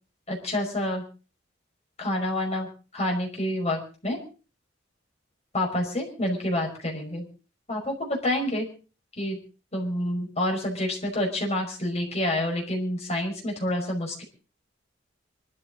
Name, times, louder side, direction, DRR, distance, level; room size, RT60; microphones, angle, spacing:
voice 1, 0.3-1.0 2.0-2.7 2.9-4.2 5.5-7.3 7.7-8.7 9.2-9.4 9.7-14.2, left 1 dB, 35° left, 0 dB, 5.3 m, -28 dB
24.5 x 13.0 x 3.9 m, 0.36 s
head